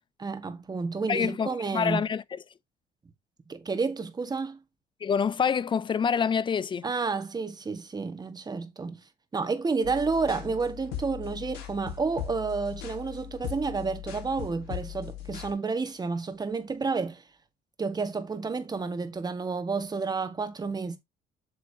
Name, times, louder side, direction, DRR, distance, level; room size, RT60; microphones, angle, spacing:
voice 1, 0.2-2.0 3.5-4.6 6.8-9.0 9.3-17.2 17.8-21.0, right 4 dB, 25° right, 1.6 m, -30 dB
voice 2, 1.1-2.4 5.0-6.9, left 7 dB, 30° left, 0.4 m, -27 dB
sound 1, 9.8-15.5, left 11 dB, 90° left, 2.0 m, -39 dB
8.3 x 6.6 x 2.8 m
cardioid pair, 110°, 17 cm